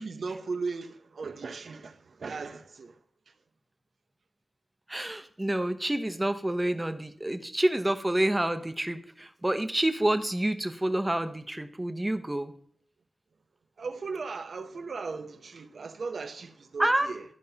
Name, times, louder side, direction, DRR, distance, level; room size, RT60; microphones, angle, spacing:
voice 1, 0.0-3.0 13.8-17.2, right 4 dB, 80° right, 0.7 m, -37 dB
voice 2, 4.9-12.5 16.8-17.1, right 1 dB, 15° right, 0.7 m, -28 dB
13.0 x 5.4 x 2.8 m
wide cardioid pair, 95°, 0 cm